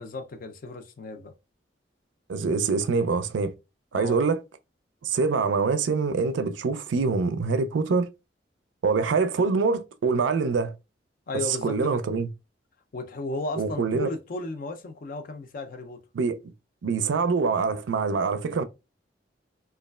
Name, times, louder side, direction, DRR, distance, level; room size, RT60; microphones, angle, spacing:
voice 1, 0.0-1.3 3.9-4.2 11.3-12.0 12.9-16.0, left 2 dB, 50° left, 0.5 m, -35 dB
voice 2, 2.3-3.5 3.9-4.4 5.0-8.1 8.8-10.7 11.3-12.3 13.6-14.1 16.1-16.4 16.8-18.6, right 4 dB, 80° right, 0.4 m, -25 dB
3.1 x 2.3 x 2.3 m
head